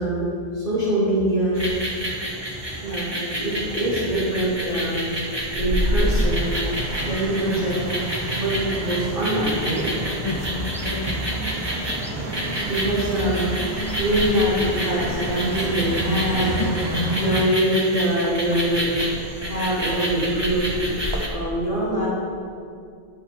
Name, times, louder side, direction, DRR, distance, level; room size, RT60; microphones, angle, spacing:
voice 1, 0.0-1.6 2.8-5.1 5.6-6.7 7.0-7.8 8.3-9.8 12.7-13.5 14.0-16.6 17.1-18.9 19.5-20.7 21.3-22.1, right 1 dB, 55° right, -8 dB, 3.0 m, -24 dB
sound 1, 1.5-21.3, equal, 25° right, 1.3 m, -28 dB
sound 2, 6.0-17.4, right 1 dB, 85° right, 1.3 m, -31 dB
sound 3, 9.4-16.8, equal, 5° right, 0.6 m, -37 dB
voice 2, 10.2-11.3 16.4-17.5, left 4 dB, 45° left, 6 dB, 0.3 m, -32 dB
10.5 x 6.0 x 6.1 m, 2.4 s
omnidirectional pair, 1.0 m